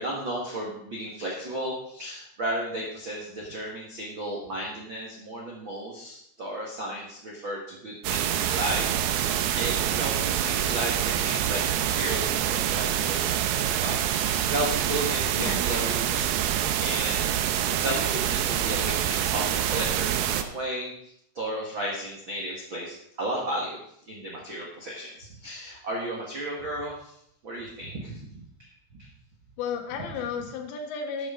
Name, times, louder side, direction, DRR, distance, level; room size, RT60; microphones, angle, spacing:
voice 1, 0.0-23.8 24.1-27.2 27.4-28.4 28.9-29.1, right 1 dB, 65° right, -3 dB, 1.2 m, -34 dB
sound 1, 8.0-20.4, right 10 dB, 85° right, 2.2 m, -26 dB
voice 2, 29.6-31.3, left 6 dB, 75° left, 4 dB, 3.5 m, -33 dB
12.5 x 9.4 x 3.8 m, 0.73 s
omnidirectional pair, 5.2 m